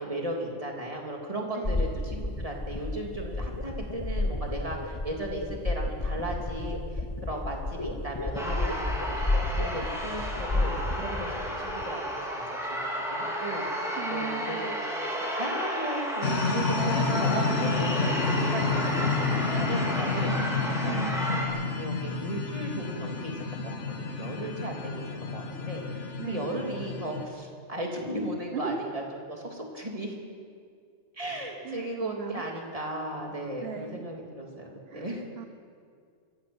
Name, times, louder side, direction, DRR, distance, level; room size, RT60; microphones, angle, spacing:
voice 1, 0.0-6.8 7.2-12.8 13.1-13.6 14.1-14.8 15.3-21.0 21.4-30.2 31.1-35.2, right 1 dB, 30° right, 0 dB, 3.3 m, -36 dB
voice 2, 1.5-1.9 14.0-14.8 20.8-21.2 26.2-26.6 28.5-29.0 31.6-32.4 33.6-34.1 34.9-35.4, right 6 dB, 60° right, 7 dB, 1.2 m, -38 dB
sound 1, 1.6-11.8, left 2 dB, 20° left, 1.0 m, -31 dB
sound 2, 8.4-21.5, equal, ahead, 3.8 m, -32 dB
sound 3, 16.2-27.3, left 4 dB, 80° left, 1.8 m, -30 dB
23.0 x 15.0 x 8.1 m, 2.2 s
omnidirectional pair, 1.2 m